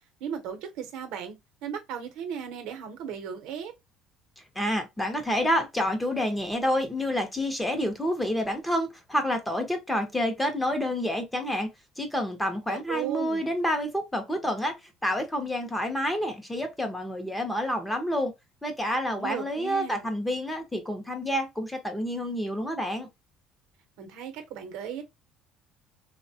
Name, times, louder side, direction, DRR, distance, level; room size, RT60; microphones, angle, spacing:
voice 1, 0.2-3.7 12.7-13.5 19.1-20.1 24.0-25.0, right 8 dB, 75° right, 0.7 m, -36 dB
voice 2, 4.6-11.7 12.0-14.7 15.0-18.3 18.6-23.1, equal, 5° left, 0.6 m, -28 dB
3.1 x 2.1 x 2.7 m
cardioid pair, 150°, 0 cm